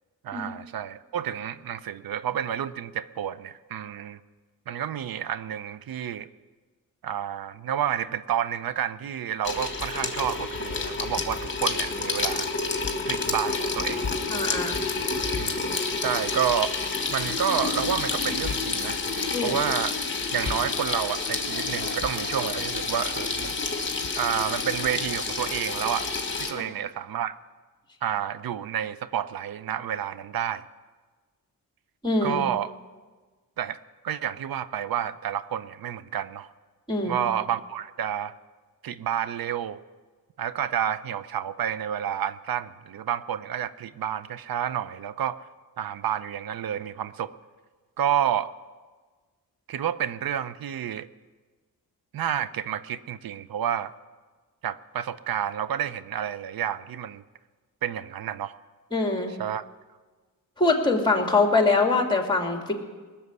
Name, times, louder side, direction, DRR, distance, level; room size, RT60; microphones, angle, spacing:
voice 1, 0.2-4.2 4.7-6.3 7.0-12.5 13.1-14.1 15.4-15.6 16.0-16.7 17.1-19.0 19.4-19.9 20.3-23.5 24.2-26.1 26.4-27.4 28.0-30.6 32.2-32.7 33.6-33.8 34.0-36.5 37.0-38.3 38.8-39.8 40.4-45.4 45.8-47.3 48.0-48.5 49.7-51.1 52.1-53.9 54.6-57.2 57.8-58.5 59.4-59.6, right 9 dB, 70° right, 15 dB, 0.7 m, -29 dB
Water tap faucet / Sink (filling or washing), 9.4-26.5, left 4 dB, 30° left, 2.0 m, -29 dB
voice 2, 14.3-14.8 19.3-19.6 26.5-26.6 32.0-32.4 36.9-37.2 58.9-59.3 60.6-62.7, left 3 dB, 10° left, 3 dB, 2.5 m, -23 dB
19.0 x 7.0 x 9.6 m, 1.4 s
cardioid pair, 80°, 36 cm